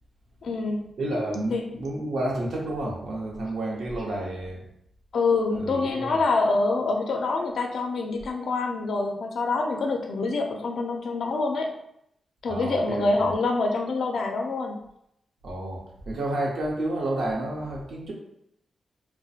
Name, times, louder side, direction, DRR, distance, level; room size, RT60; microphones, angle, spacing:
voice 1, 0.4-0.8 1.5-1.7 5.1-11.7 12.4-14.8, left 3 dB, 70° left, 3 dB, 0.4 m, -26 dB
voice 2, 1.0-4.6 5.5-6.2 12.5-13.3 15.4-18.1, right 1 dB, 75° right, -2 dB, 0.7 m, -30 dB
2.3 x 2.1 x 2.7 m, 0.75 s
wide cardioid pair, 105°, 0 cm